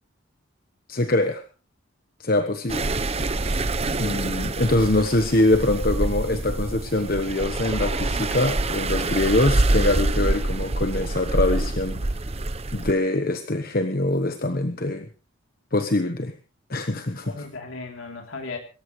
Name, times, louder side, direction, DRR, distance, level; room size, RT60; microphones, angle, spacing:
voice 1, 0.9-1.4 2.2-3.0 3.4-3.6 4.0-12.0 12.7-15.1 15.7-16.3 16.7-17.5, left 2 dB, 45° left, 8 dB, 1.1 m, -23 dB
sound 1, 2.7-12.9, right 2 dB, 30° right, 0.8 m, -26 dB
voice 2, 3.8-4.3 17.3-18.6, left 3 dB, 80° left, 2 dB, 3.2 m, -36 dB
26.0 x 14.0 x 3.2 m, 0.35 s
head